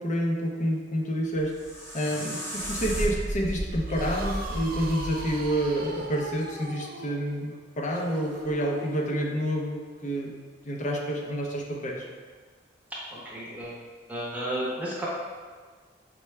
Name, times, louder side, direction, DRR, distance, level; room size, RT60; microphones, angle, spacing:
voice 1, 0.0-1.5 1.9-10.3 10.6-12.1, equal, 40° left, 0 dB, 0.6 m, -29 dB
sound 1, 1.3-6.4, equal, 15° left, 1.1 m, -34 dB
sound 2, 3.9-9.4, right 1 dB, 50° right, 0.5 m, -39 dB
voice 2, 12.9-13.8 14.1-15.1, right 1 dB, 10° right, -7 dB, 0.8 m, -33 dB
5.5 x 2.3 x 3.1 m, 1.5 s
head